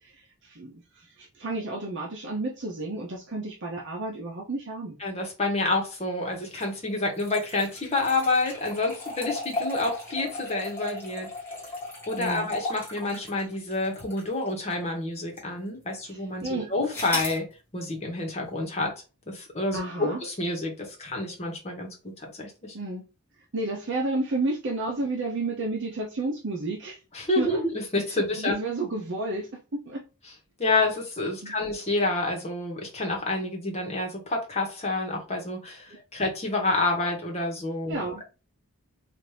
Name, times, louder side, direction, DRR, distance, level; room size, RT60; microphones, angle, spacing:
voice 1, 0.0-5.0 12.2-12.5 16.0-16.7 19.7-20.2 22.7-23.0 23.5-27.0 27.4-27.6 28.4-30.0 31.4-31.5 35.9-36.0 37.9-38.2, right 2 dB, 55° right, 0.8 m, -31 dB
voice 2, 5.0-11.3 12.1-17.5 17.7-18.9 19.3-22.7 27.1-28.5 30.6-38.2, left 2 dB, 30° left, 1.3 m, -28 dB
sound 1, 6.4-14.9 15.4-15.5 16.9-17.4, left 2 dB, 10° left, 1.5 m, -36 dB
4.2 x 2.6 x 3.3 m
head